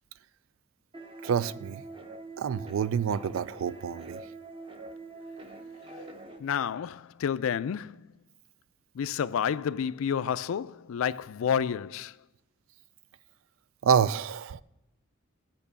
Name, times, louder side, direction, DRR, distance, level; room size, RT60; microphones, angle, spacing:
sound 1, 0.9-6.4, right 2 dB, 25° right, 0.8 m, -44 dB
voice 1, 1.2-1.8 2.4-4.2 13.8-14.6, right 7 dB, 85° right, 0.4 m, -27 dB
voice 2, 6.4-8.0 9.0-12.1, left 8 dB, 85° left, 0.4 m, -30 dB
8.9 x 5.4 x 6.9 m
head